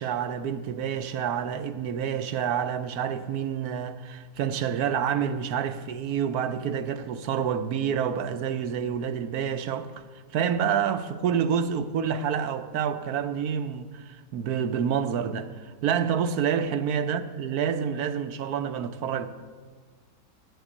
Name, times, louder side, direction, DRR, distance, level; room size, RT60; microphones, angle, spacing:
voice 1, 0.0-10.0 10.3-19.3, right 8 dB, 70° right, 1.1 m, -28 dB
9.8 x 8.0 x 8.3 m
omnidirectional pair, 1.8 m